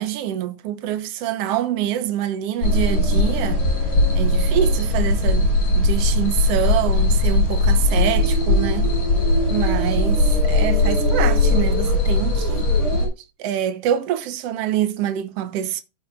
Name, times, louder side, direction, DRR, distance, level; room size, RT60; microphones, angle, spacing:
voice 1, 0.0-3.7 4.1-8.9 9.5-12.7 13.4-15.8, right 11 dB, 65° right, 1.7 m, -25 dB
sound 1, 2.6-13.1, left 2 dB, 40° left, 6.0 m, -19 dB
14.5 x 6.0 x 2.4 m
omnidirectional pair, 3.7 m